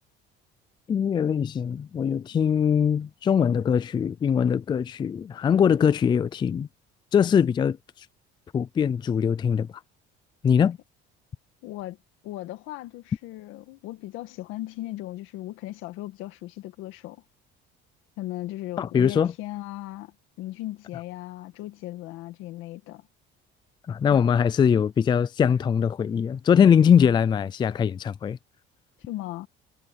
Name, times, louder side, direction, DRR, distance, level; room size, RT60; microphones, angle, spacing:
voice 1, 0.9-6.7 7.1-7.8 8.5-9.7 10.4-10.8 18.8-19.3 23.9-28.4, left 7 dB, 20° left, 0.4 m, -22 dB
voice 2, 11.6-12.0 12.2-17.2 18.2-23.1 24.1-24.3 29.1-29.5, left 16 dB, 80° left, 1.9 m, -37 dB
cardioid pair, 145°, 20 cm